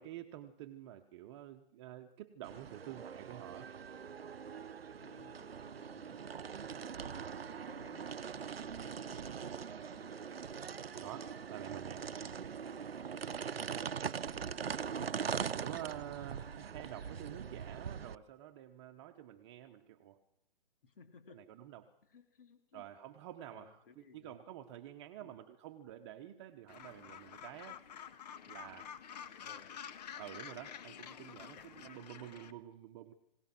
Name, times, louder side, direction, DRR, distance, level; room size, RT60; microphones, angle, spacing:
voice 1, 0.0-3.7 11.0-12.1 15.5-20.2 21.7-21.8 22.7-23.7 24.1-27.8 28.5-28.9 30.2-31.6 31.8-33.1, right 12 dB, 30° right, 6 dB, 1.1 m, -49 dB
sound 1, 2.4-18.2, right 7 dB, 90° right, 0.8 m, -42 dB
voice 2, 5.0-10.7 20.8-21.5 22.0-22.9 23.5-24.4 25.2-25.4 29.4-29.8 31.4-31.9, left 5 dB, 65° left, 5 dB, 2.7 m, -62 dB
Gull seagull, 26.7-32.5, left 8 dB, 45° left, 1.6 m, -49 dB
24.5 x 18.0 x 6.1 m, 0.78 s
hypercardioid pair, 145°, 29 cm